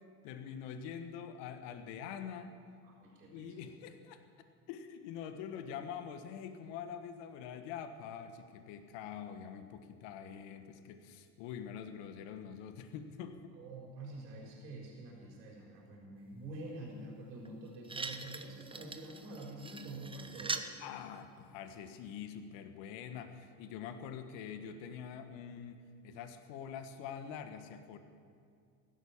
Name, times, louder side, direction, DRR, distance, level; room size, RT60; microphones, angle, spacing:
voice 1, 0.2-2.5 3.3-4.2 4.7-13.5 20.8-25.8 26.0-28.0, left 8 dB, 60° left, 8 dB, 1.5 m, -45 dB
voice 2, 2.8-3.7 13.5-20.6, right 2 dB, 80° right, -3 dB, 4.4 m, -47 dB
sound 1, 17.4-17.5 17.8-20.7 21.7-21.8, right 3 dB, 10° right, 0.9 m, -42 dB
15.5 x 12.0 x 7.2 m, 2.3 s
hypercardioid pair, 90°, 49 cm